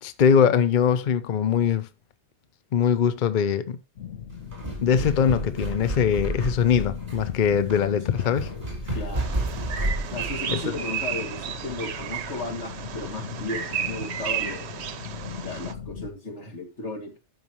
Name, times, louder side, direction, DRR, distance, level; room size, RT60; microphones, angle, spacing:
voice 1, 0.0-1.9 2.7-3.8 4.8-8.5 10.5-10.7, left 7 dB, 50° left, 0.7 m, -22 dB
sound 1, 4.0-16.1, left 8 dB, 70° left, 1.2 m, -39 dB
sound 2, 4.3-10.4, right 2 dB, 35° right, 3.9 m, -31 dB
voice 2, 8.9-9.4 10.1-14.9 15.4-17.2, left 2 dB, 90° left, 2.5 m, -35 dB
Bird vocalization bird call bird song, 9.1-15.7, right 9 dB, 70° right, 1.0 m, -33 dB
12.5 x 5.6 x 3.0 m
omnidirectional pair, 1.2 m